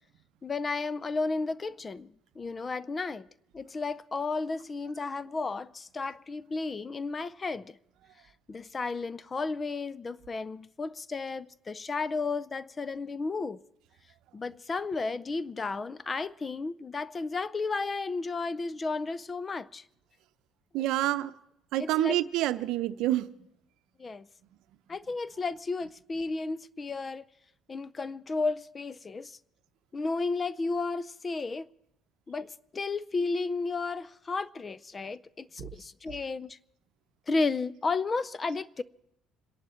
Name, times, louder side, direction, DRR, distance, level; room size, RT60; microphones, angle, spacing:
voice 1, 0.4-3.3 3.5-7.8 8.5-13.6 14.3-19.8 21.8-22.2 24.0-24.3 24.9-27.3 27.7-29.4 29.9-31.7 32.3-36.6 37.3-38.8, left 3 dB, 25° left, 0.5 m, -33 dB
voice 2, 20.7-21.3 21.7-23.3, right 15 dB, 75° right, 0.7 m, -27 dB
27.0 x 11.0 x 4.4 m
cardioid pair, 115°, 0 cm